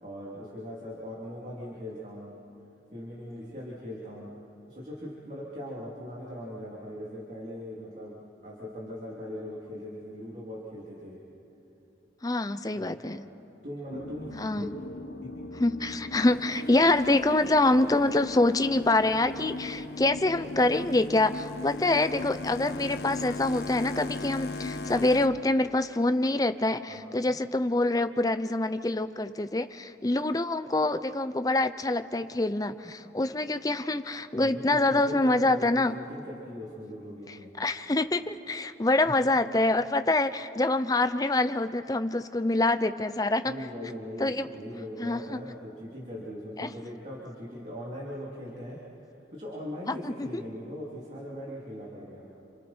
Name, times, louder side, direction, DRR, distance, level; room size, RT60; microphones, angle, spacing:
voice 1, 0.0-2.4 2.9-4.3 4.7-11.2 12.7-13.2 13.6-14.7 15.2-15.3 26.9-27.1 34.4-37.5 43.4-48.8 49.3-52.3, equal, 40° right, -6 dB, 3.3 m, -40 dB
voice 2, 12.2-13.2 14.4-14.7 15.6-36.0 37.3-43.5 44.2-44.5 45.0-45.4 46.6-46.7 49.9-50.4, left 2 dB, 20° left, 10 dB, 0.6 m, -26 dB
sound 1, 13.9-25.6, left 2 dB, 85° left, 1.2 m, -40 dB
sound 2, 16.1-25.3, left 3 dB, 60° left, 0.9 m, -41 dB
28.5 x 28.5 x 4.5 m, 2.9 s
head